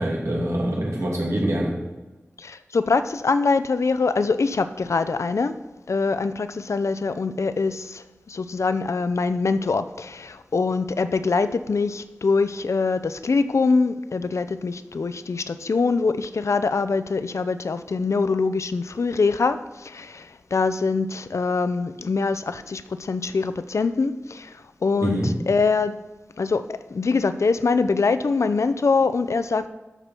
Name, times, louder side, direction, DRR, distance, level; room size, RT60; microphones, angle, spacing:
voice 1, 0.0-1.8 25.0-25.3, right 1 dB, 85° right, -3 dB, 2.8 m, -24 dB
voice 2, 2.4-5.6 5.9-26.0 26.4-29.7, left 4 dB, 85° left, 12 dB, 0.5 m, -24 dB
12.0 x 6.9 x 4.4 m, 1.2 s
wide cardioid pair, 65°, 5 cm